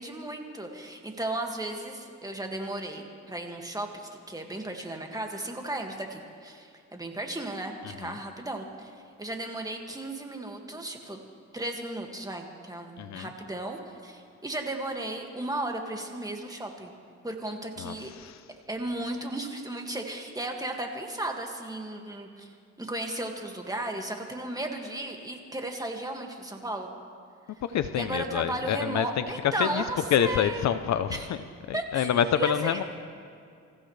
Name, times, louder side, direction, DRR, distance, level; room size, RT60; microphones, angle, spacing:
voice 1, 0.0-11.2 11.5-16.9 17.2-18.1 18.7-26.9 27.9-30.7 31.1-31.3 31.7-32.8, right 1 dB, 10° right, 2 dB, 2.0 m, -35 dB
voice 2, 17.8-18.3 27.7-29.1 29.6-29.8 30.1-31.1 31.9-32.8, left 9 dB, 65° left, 11 dB, 0.7 m, -26 dB
26.5 x 15.0 x 3.3 m, 2.3 s
cardioid pair, 90°, 30 cm